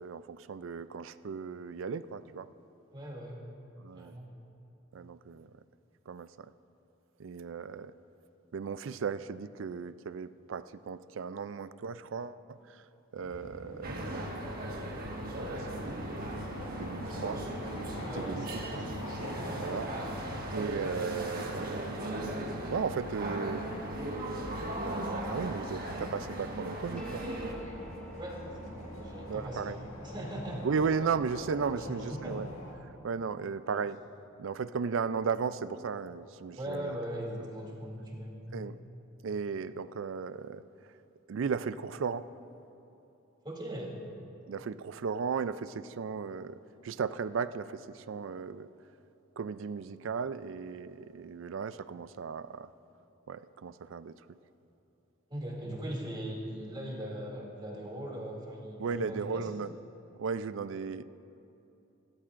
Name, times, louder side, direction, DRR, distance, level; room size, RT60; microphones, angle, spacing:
voice 1, 0.0-2.5 3.8-4.1 4.9-5.5 6.1-6.5 7.2-7.9 8.5-12.8 13.1-14.3 15.4-16.4 16.7-17.4 18.2-18.9 19.6-19.9 20.5-22.0 22.7-23.6 24.8-27.3 29.3-29.8 30.6-32.5 33.0-34.0 34.4-37.0 38.5-38.7 39.2-40.6 41.3-42.3 44.5-48.7 49.4-52.7 53.3-54.1 58.8-59.7 60.2-61.0, right 5 dB, 65° right, 14 dB, 0.4 m, -36 dB
voice 2, 2.9-3.4 3.9-4.3 18.0-19.6 28.2-29.8 30.0-30.6 31.8-32.4 36.5-38.6 43.4-44.0 55.3-59.5, equal, 25° right, -3 dB, 2.6 m, -40 dB
sound 1, 13.2-32.7, left 1 dB, 85° left, 1.8 m, -45 dB
sound 2, 13.8-27.5, right 1 dB, 45° right, 1.5 m, -37 dB
sound 3, 27.0-33.7, right 1 dB, 5° left, 1.7 m, -51 dB
27.5 x 13.0 x 2.5 m, 2.9 s
head